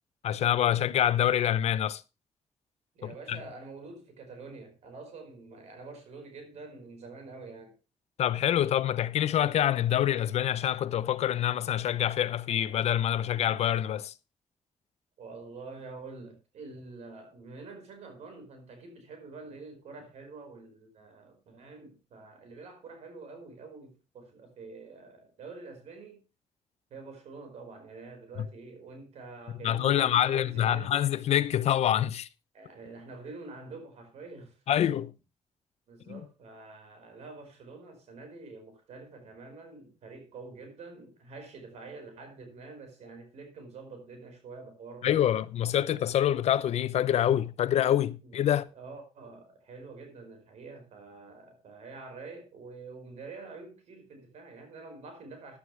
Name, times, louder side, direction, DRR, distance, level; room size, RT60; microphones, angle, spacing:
voice 1, 0.2-2.0 3.0-3.4 8.2-14.1 29.6-32.3 34.7-35.1 36.1-36.2 45.0-48.6, left 11 dB, 80° left, 0.7 m, -26 dB
voice 2, 3.0-7.8 15.2-26.2 26.9-31.0 32.5-34.6 35.9-45.4 48.2-48.4 48.7-55.6, right 3 dB, 85° right, 5.2 m, -46 dB
14.0 x 11.5 x 3.4 m
cardioid pair, 105°, 11 cm